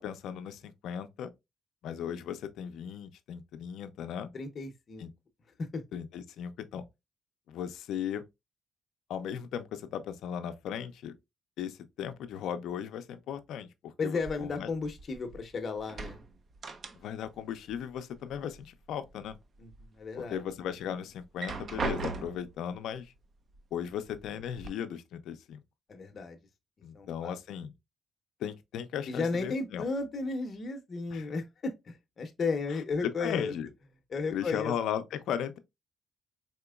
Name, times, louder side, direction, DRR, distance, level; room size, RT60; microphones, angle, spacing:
voice 1, 0.0-1.3 1.8-4.3 5.0-5.1 5.9-6.8 7.5-8.2 9.1-11.1 11.6-14.7 17.0-19.4 20.2-23.1 23.7-25.6 26.8-27.7 28.4-29.8 31.1-31.3 33.0-33.7 34.3-35.6, left 9 dB, 80° left, 0.4 m, -37 dB
voice 2, 4.3-5.1 5.6-5.8 14.0-16.2 19.6-20.4 25.9-26.4 26.9-27.3 29.1-33.5 34.1-34.7, left 4 dB, 45° left, 0.7 m, -34 dB
sound 1, 14.2-15.5 15.8-17.4 17.7-18.7 19.1-19.8 20.3-20.4 21.2-22.6 23.5-23.6 24.1-24.7, right 4 dB, 45° right, 0.5 m, -39 dB
4.2 x 2.9 x 2.2 m
cardioid pair, 90°, 0 cm